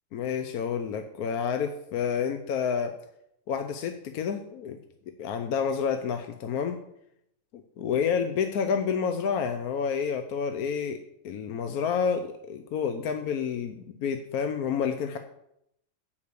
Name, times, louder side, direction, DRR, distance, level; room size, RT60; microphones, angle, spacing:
voice 1, 0.1-2.9 3.5-4.8 5.1-6.8 7.8-11.0 11.2-15.2, left 6 dB, 70° left, 6 dB, 1.1 m, -29 dB
8.0 x 5.6 x 6.7 m, 0.76 s
omnidirectional pair, 1.8 m